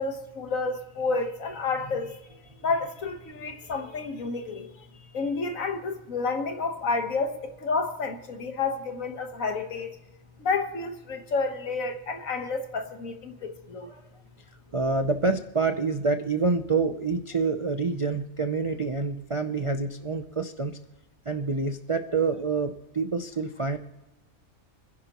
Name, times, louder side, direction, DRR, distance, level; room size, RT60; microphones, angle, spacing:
voice 1, 0.0-2.2 2.6-10.0 10.4-13.9, left 4 dB, 70° left, 1.7 m, -30 dB
voice 2, 14.7-20.8 21.3-23.8, right 4 dB, 40° right, 0.4 m, -27 dB
29.5 x 10.5 x 3.0 m
omnidirectional pair, 1.5 m